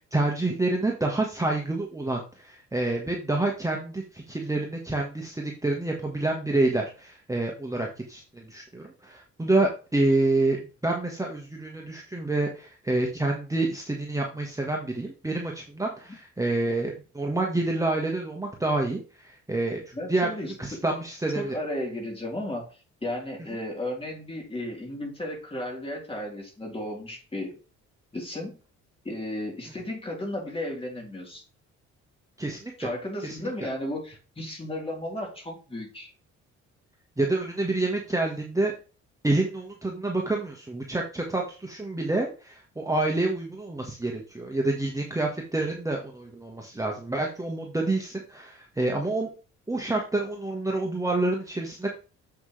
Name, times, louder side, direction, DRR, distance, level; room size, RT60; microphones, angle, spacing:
voice 1, 0.0-10.6 10.8-19.8 20.1-21.5 32.4-32.7 33.2-33.4 37.2-38.7 39.2-49.3 49.7-51.9, right 2 dB, 10° right, 0 dB, 1.4 m, -28 dB
voice 2, 19.9-20.5 21.3-27.6 28.1-28.6 29.0-31.4 32.8-36.1, left 1 dB, 20° left, -1 dB, 3.6 m, -34 dB
7.3 x 6.0 x 3.2 m, 0.35 s
cardioid pair, 90°, 30 cm